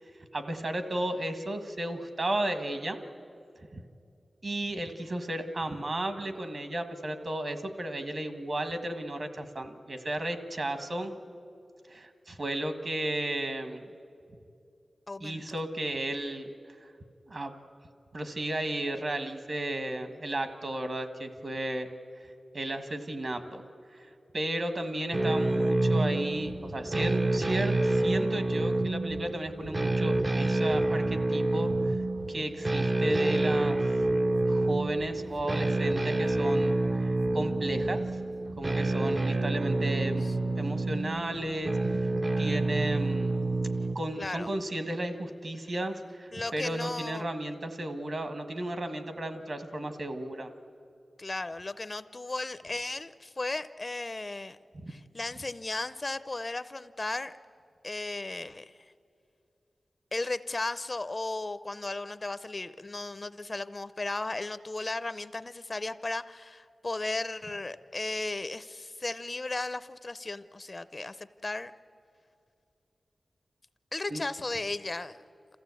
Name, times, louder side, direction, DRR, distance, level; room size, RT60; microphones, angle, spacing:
voice 1, 0.3-3.0 3.7-3.8 4.4-11.1 11.9-13.8 15.2-16.5 17.3-17.5 18.1-21.9 22.5-23.7 24.0-24.1 24.3-32.0 32.3-33.8 34.4-36.7 37.0-38.0 38.6-40.3 40.6-43.4 43.9-50.5 54.7-54.9 74.1-74.2, right 1 dB, 50° right, 8 dB, 1.4 m, -34 dB
voice 2, 15.1-15.4 40.2-40.6 44.2-44.5 46.3-47.3 51.2-54.6 54.9-57.3 57.8-58.8 60.1-71.7 73.9-75.2, left 2 dB, 30° left, 14 dB, 0.5 m, -35 dB
sound 1, 25.1-44.0, right 2 dB, 30° right, 0.4 m, -28 dB
sound 2, 26.4-39.1, right 2 dB, 70° right, 1.3 m, -47 dB
27.0 x 15.0 x 8.3 m, 2.6 s
wide cardioid pair, 115°, 0 cm